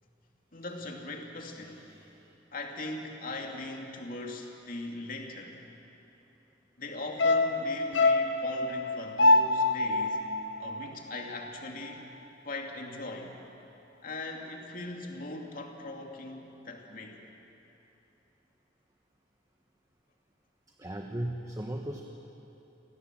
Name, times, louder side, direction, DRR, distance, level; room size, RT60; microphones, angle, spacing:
voice 1, 0.5-1.9 2.5-5.6 6.8-10.3 10.6-12.1 12.4-13.3 14.0-17.2, left 2 dB, 50° left, 1 dB, 2.8 m, -40 dB
voice 2, 1.8-2.2 20.8-22.0, right 1 dB, 20° right, 2 dB, 1.3 m, -37 dB
sound 1, 7.2-11.6 11.9-12.0, left 2 dB, 90° left, 1.1 m, -26 dB
29.0 x 19.5 x 7.6 m, 2.9 s
head